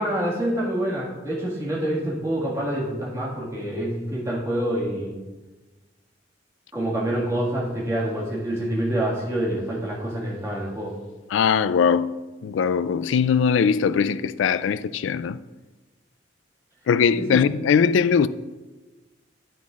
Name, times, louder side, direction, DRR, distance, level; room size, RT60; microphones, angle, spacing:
voice 1, 0.0-5.2 6.7-10.9 17.2-17.4, right 1 dB, 15° right, 1.8 m, -27 dB
voice 2, 11.3-12.2 12.4-15.4 16.9-18.3, left 6 dB, 80° left, 0.3 m, -20 dB
9.9 x 9.4 x 2.4 m
head